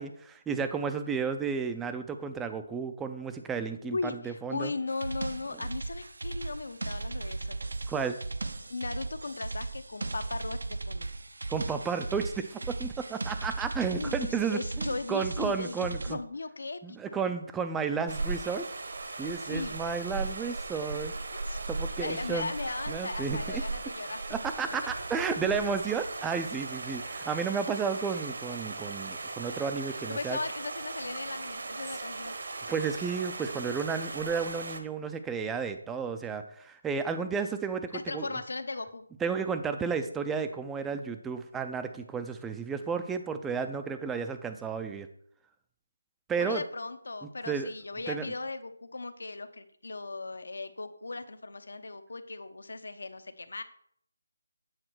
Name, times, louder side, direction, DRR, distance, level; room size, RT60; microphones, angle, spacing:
voice 1, 0.0-4.0 4.2-4.7 7.9-8.2 11.5-16.2 16.8-18.6 19.2-21.1 21.7-22.5 22.9-23.6 24.3-30.4 32.7-38.4 39.2-45.1 46.3-46.6 47.5-47.7 48.1-48.3, right 5 dB, 5° right, 8 dB, 0.4 m, -32 dB
voice 2, 3.9-7.6 8.7-11.1 13.9-17.2 19.4-19.8 21.3-21.6 22.0-24.2 25.0-25.1 30.1-32.3 37.9-39.0 46.4-53.6, left 3 dB, 70° left, 11 dB, 0.9 m, -37 dB
sound 1, 4.9-16.2, right 3 dB, 75° right, 0.7 m, -37 dB
sound 2, 18.1-34.8, right 3 dB, 55° right, 1.1 m, -37 dB
8.9 x 4.1 x 6.1 m, 0.65 s
figure-of-eight pair, 175°, 0 cm